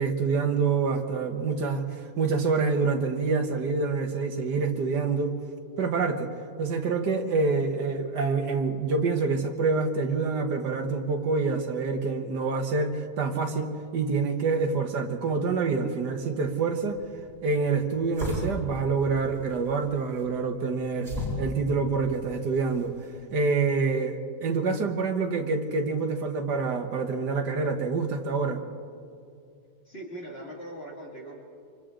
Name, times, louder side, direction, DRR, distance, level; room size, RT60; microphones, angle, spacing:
voice 1, 0.0-5.4 5.8-6.3 6.6-17.0 17.4-23.0 23.3-28.6, right 4 dB, 75° right, 5 dB, 1.9 m, -27 dB
sound 1, 16.8-23.2, left 1 dB, 50° right, 7.4 m, -38 dB
voice 2, 29.9-31.4, right 1 dB, 35° left, -3 dB, 2.6 m, -40 dB
28.5 x 25.5 x 3.8 m, 2.5 s
omnidirectional pair, 1.8 m